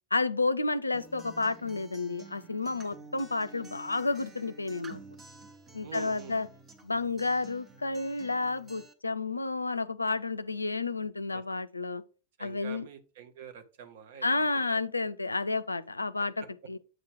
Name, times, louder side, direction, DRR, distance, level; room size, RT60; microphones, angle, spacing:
voice 1, 0.1-5.0 5.7-6.5 6.8-12.0 12.4-12.9 14.2-16.8, left 3 dB, 80° left, 0.3 m, -31 dB
Acoustic guitar, 0.9-8.9, right 3 dB, 20° right, 0.9 m, -51 dB
voice 2, 5.8-6.4 11.3-11.4 12.4-14.5, right 8 dB, 55° right, 0.8 m, -46 dB
7.6 x 2.9 x 4.6 m
figure-of-eight pair, 90°, 0 cm